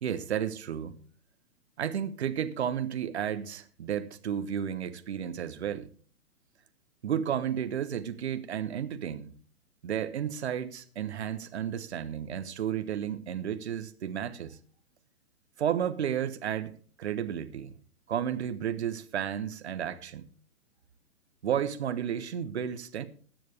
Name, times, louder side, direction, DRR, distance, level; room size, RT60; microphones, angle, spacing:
voice 1, 0.0-1.0 1.8-5.9 7.0-9.3 9.8-14.6 15.6-17.7 18.1-20.3 21.4-23.1, right 9 dB, 50° right, 1.2 m, -32 dB
20.0 x 7.8 x 3.4 m
figure-of-eight pair, 120°, 44 cm